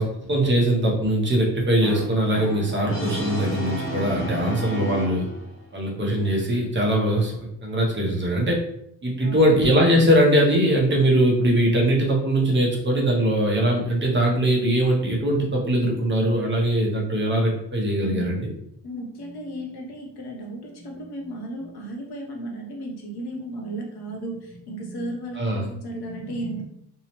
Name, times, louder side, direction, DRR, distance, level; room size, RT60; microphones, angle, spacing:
voice 1, 0.0-5.3 5.7-8.6 9.0-18.5 25.4-25.7, right 1 dB, 25° right, -2 dB, 0.5 m, -21 dB
Brass instrument, 1.8-5.6, right 1 dB, 30° left, 0.8 m, -32 dB
voice 2, 4.3-4.9 9.2-9.5 18.0-18.4 18.8-26.6, right 1 dB, 60° left, 0 dB, 0.7 m, -34 dB
2.7 x 2.0 x 2.8 m, 0.70 s
wide cardioid pair, 175°, 44 cm